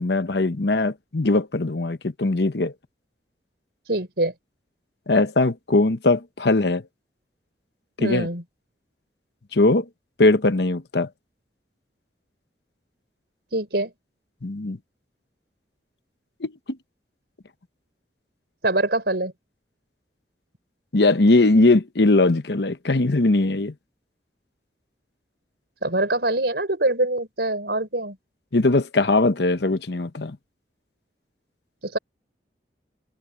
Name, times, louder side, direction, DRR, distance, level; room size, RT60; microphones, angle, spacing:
voice 1, 0.0-2.7 5.1-6.8 8.0-8.3 9.5-9.9 10.2-11.1 14.4-14.8 16.4-16.5 20.9-23.7 28.5-30.4, left 2 dB, 70° left, 1.0 m, -20 dB
voice 2, 3.9-4.3 8.0-8.4 13.5-13.9 18.6-19.3 25.8-28.2 31.8-32.0, right 2 dB, 65° right, 6.1 m, -24 dB
head